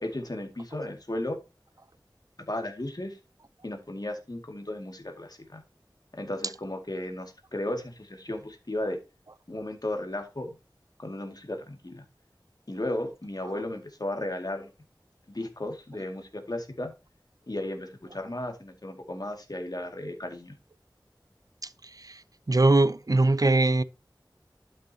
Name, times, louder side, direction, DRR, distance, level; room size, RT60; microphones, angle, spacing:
voice 1, 0.0-1.4 2.5-3.2 3.6-5.6 6.1-9.0 9.5-10.6 11.0-12.0 12.7-14.7 15.3-16.9 17.5-20.6, left 1 dB, 55° left, 2.2 m, -35 dB
voice 2, 22.5-23.8, right 2 dB, 50° right, 0.6 m, -21 dB
11.5 x 6.5 x 2.8 m
wide cardioid pair, 45°, 8 cm